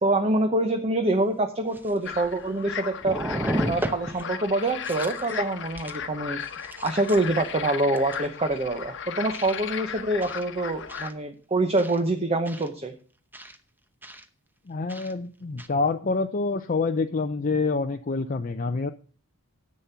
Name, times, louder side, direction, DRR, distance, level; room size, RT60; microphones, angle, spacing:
voice 1, 0.0-3.2 3.7-6.4 6.8-12.9, right 2 dB, 30° right, 6 dB, 0.9 m, -25 dB
sound 1, 1.1-1.2 1.7-2.6 3.0-4.3 4.7-5.4 5.8-6.0 6.4-7.4 7.9-8.3 9.3-9.6 10.2-10.4 10.9-11.1 11.8-12.0 12.4-12.7 13.3-13.6 14.0-14.2 14.9-15.1 15.6-15.7, equal, 10° right, 0.8 m, -34 dB
sound 2, 2.1-11.1, left 7 dB, 55° left, 1.1 m, -36 dB
voice 2, 14.7-18.9, left 3 dB, 35° left, 6 dB, 0.5 m, -27 dB
10.0 x 7.6 x 5.6 m, 0.39 s
head